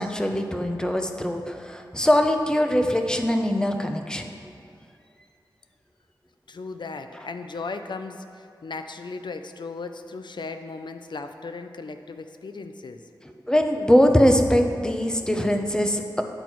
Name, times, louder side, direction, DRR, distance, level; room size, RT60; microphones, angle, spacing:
voice 1, 0.0-4.2 13.5-16.2, equal, 10° left, 4 dB, 0.7 m, -22 dB
voice 2, 6.5-13.0, left 4 dB, 65° left, 8 dB, 0.5 m, -36 dB
8.9 x 6.0 x 4.6 m, 2.4 s
wide cardioid pair, 70°, 8 cm